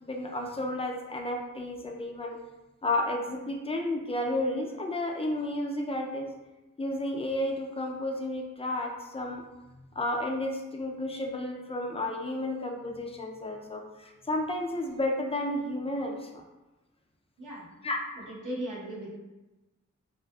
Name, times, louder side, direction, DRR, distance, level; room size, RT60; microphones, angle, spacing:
voice 1, 0.0-2.4 2.8-6.3 6.8-9.4 9.7-16.4 17.8-18.0, left 1 dB, 20° left, 1 dB, 0.3 m, -32 dB
voice 2, 18.1-19.1, right 1 dB, 75° right, -6 dB, 0.9 m, -37 dB
2.7 x 2.4 x 2.2 m, 1.1 s
wide cardioid pair, 80°, 31 cm